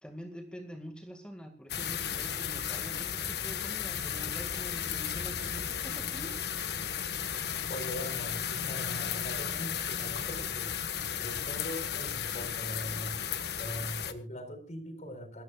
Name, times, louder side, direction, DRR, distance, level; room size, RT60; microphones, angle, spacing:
voice 1, 0.0-6.3, equal, 5° left, 5 dB, 2.0 m, -45 dB
sound 1, 1.7-14.1, left 8 dB, 65° left, 1.4 m, -34 dB
voice 2, 7.7-10.7 11.2-13.2 13.6-15.4, equal, 45° left, 7 dB, 4.3 m, -41 dB
28.5 x 13.5 x 2.4 m, 0.39 s
head